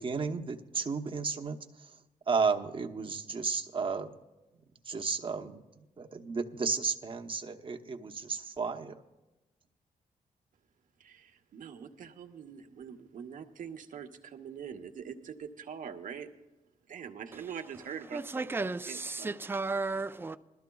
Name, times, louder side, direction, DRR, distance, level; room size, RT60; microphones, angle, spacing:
voice 1, 0.0-1.6 2.3-4.1 4.9-5.6 6.0-8.9, right 5 dB, 35° right, 0.9 m, -33 dB
voice 2, 11.0-16.3 16.9-18.5 18.9-19.3, right 7 dB, 65° right, 1.0 m, -44 dB
voice 3, 18.1-20.4, right 3 dB, 15° right, 0.5 m, -34 dB
21.0 x 13.0 x 2.3 m
cardioid pair, 75°, 14 cm